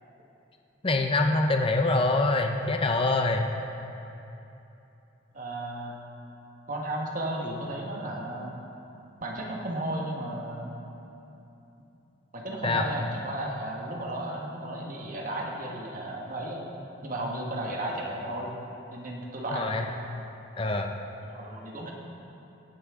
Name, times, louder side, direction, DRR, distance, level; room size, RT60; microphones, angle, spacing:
voice 1, 0.8-3.5 12.6-12.8 19.5-19.9 20.6-20.9, left 2 dB, 25° left, 4 dB, 0.5 m, -25 dB
voice 2, 5.3-5.9 6.7-8.5 9.2-10.8 12.3-16.7 17.0-18.5 18.9-19.8 21.2-21.9, right 1 dB, 40° right, -1 dB, 1.4 m, -34 dB
17.5 x 9.5 x 3.7 m, 2.9 s
head